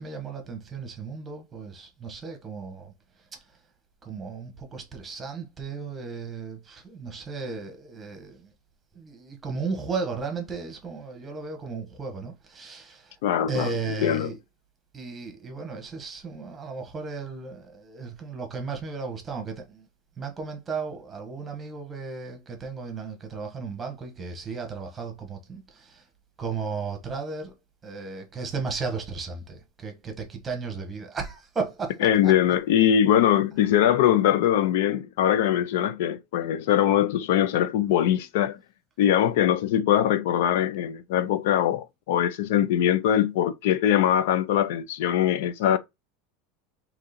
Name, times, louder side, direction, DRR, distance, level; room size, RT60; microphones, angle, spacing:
voice 1, 0.0-2.9 4.0-8.5 8.9-13.1 13.5-14.4 14.9-19.9 20.2-26.0 26.4-27.5 27.8-31.9 32.2-32.3, right 4 dB, 15° right, 1.1 m, -35 dB
voice 2, 13.2-14.3 32.0-38.6 39.0-45.8, left 10 dB, 70° left, 0.4 m, -22 dB
3.7 x 3.0 x 4.1 m
supercardioid pair, 165°, 0 cm